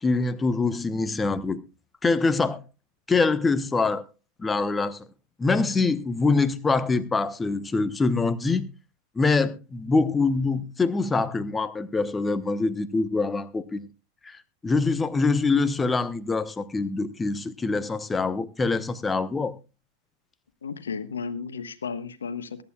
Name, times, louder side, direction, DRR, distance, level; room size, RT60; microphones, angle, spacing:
voice 1, 0.0-1.6 2.0-2.6 3.1-4.0 4.4-5.1 5.4-8.6 9.2-13.9 14.2-19.5, left 3 dB, 15° left, 1.0 m, -24 dB
voice 2, 20.6-22.6, left 5 dB, 70° left, 1.3 m, -33 dB
22.5 x 11.0 x 2.4 m
figure-of-eight pair, 90°, 0 cm